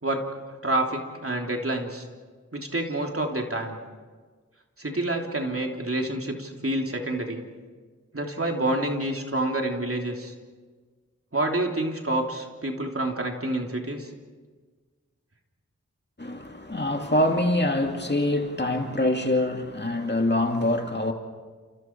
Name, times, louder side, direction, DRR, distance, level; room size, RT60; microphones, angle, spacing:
voice 1, 0.0-2.1 2.5-3.8 4.8-7.4 8.1-10.3 11.3-14.1, right 1 dB, 50° right, 3.2 m, -28 dB
voice 2, 16.2-21.1, left 1 dB, 35° left, 2.4 m, -25 dB
30.0 x 29.0 x 4.6 m
wide cardioid pair, 40°, 29 cm